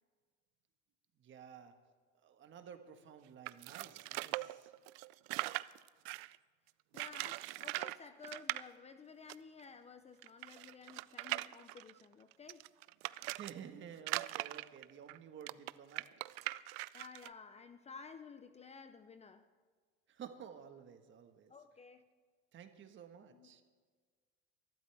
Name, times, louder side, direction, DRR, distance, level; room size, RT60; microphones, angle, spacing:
voice 1, 1.2-1.7 2.2-4.7 13.2-16.0 20.1-21.5 22.5-23.6, right 8 dB, 40° right, 7 dB, 1.4 m, -52 dB
sound 1, 3.5-6.4 6.9-8.0 8.2-8.6 9.3-9.4 9.6-9.7 10.2-13.5 14.0-17.3, right 21 dB, 80° right, 0.5 m, -41 dB
voice 2, 6.9-12.7 16.9-19.5 21.5-22.1 23.3-23.6, left 5 dB, 20° left, 10 dB, 0.6 m, -54 dB
22.5 x 12.0 x 3.4 m, 1.5 s
cardioid pair, 125°, 30 cm